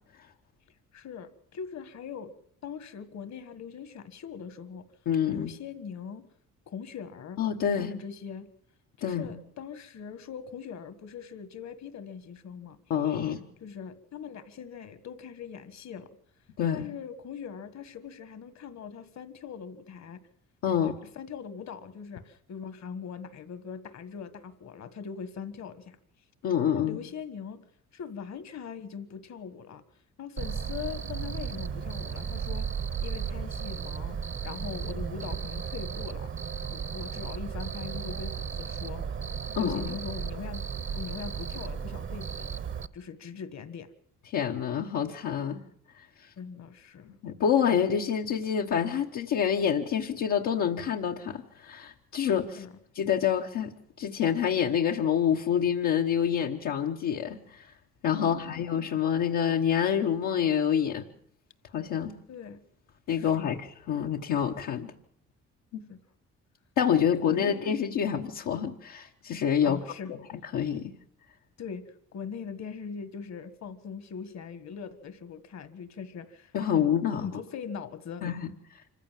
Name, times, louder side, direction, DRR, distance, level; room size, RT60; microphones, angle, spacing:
voice 1, 0.9-2.3 2.6-4.9 5.3-6.3 6.7-7.4 7.8-8.5 9.0-12.8 13.6-16.1 16.7-20.2 21.0-26.0 26.7-27.6 27.9-29.8 30.2-32.7 33.0-34.2 34.4-36.3 36.7-39.0 39.6-40.7 41.0-42.5 42.9-43.9 46.4-47.1 52.6-52.8 58.1-58.6 62.3-62.6 63.2-63.5 65.9-66.0 66.9-67.6 69.6-70.1 71.6-71.8 72.1-76.9 77.2-78.2, left 7 dB, 60° left, 13 dB, 1.8 m, -41 dB
voice 2, 5.1-5.5 7.4-7.9 9.0-9.4 12.9-13.4 16.6-16.9 20.6-21.0 26.4-27.0 39.5-39.9 44.3-45.6 47.0-52.6 52.9-53.7 54.0-57.7 58.0-61.1 61.7-62.1 63.1-64.9 65.7-65.8 66.8-69.8 70.1-70.2 70.5-70.9 76.5-77.3 78.2-78.5, left 8 dB, 80° left, 0 dB, 1.3 m, -27 dB
Cricket, 30.4-42.9, right 6 dB, 40° right, 1.0 m, -35 dB
25.5 x 15.0 x 7.5 m, 0.67 s
cardioid pair, 90°, 30 cm